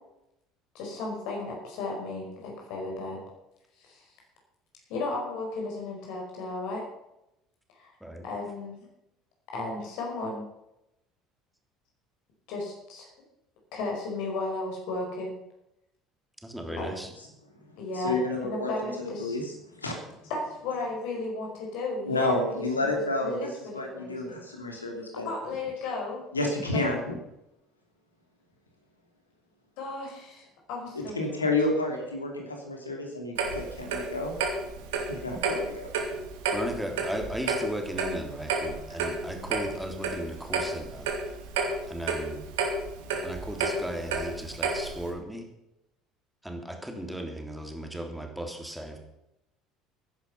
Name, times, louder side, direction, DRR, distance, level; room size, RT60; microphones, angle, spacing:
voice 1, 0.7-3.2 3.8-4.0 4.9-6.9 7.8-7.9 8.2-8.9 9.5-10.4 12.5-13.1 13.7-15.3 16.7-16.9 17.8-19.4 20.3-22.4 22.8-22.9 23.2-24.4 25.2-26.2 26.7-26.8 29.8-31.4, left 3 dB, 65° left, 0 dB, 5.1 m, -34 dB
voice 2, 16.4-17.1 36.5-41.1 41.9-42.4 43.2-45.5 46.4-49.0, right 1 dB, 5° right, 3 dB, 3.3 m, -36 dB
voice 3, 17.5-20.3 22.0-23.5 23.7-25.3 26.3-27.2 30.9-34.3 35.0-35.9 38.9-39.0, left 2 dB, 90° left, 2 dB, 2.8 m, -30 dB
Clock, 33.4-45.1, right 4 dB, 70° right, 2.5 m, -31 dB
15.0 x 10.5 x 5.8 m, 0.86 s
figure-of-eight pair, 65°, 0 cm